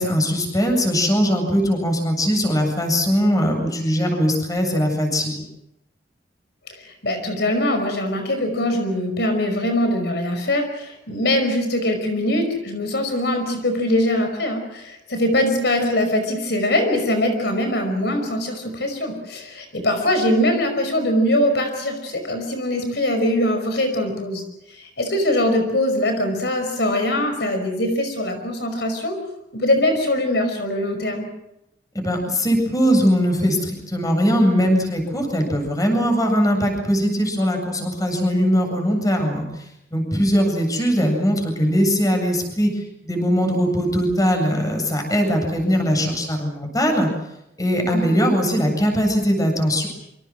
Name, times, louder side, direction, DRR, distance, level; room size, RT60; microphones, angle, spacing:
voice 1, 0.0-5.4 31.9-39.5 39.9-42.8 43.0-47.1 47.6-49.9, equal, 20° left, 4 dB, 8.0 m, -20 dB
voice 2, 6.8-29.1 29.5-31.3 47.9-48.2, left 1 dB, 65° left, 6 dB, 5.3 m, -22 dB
27.5 x 26.5 x 6.3 m, 0.85 s
head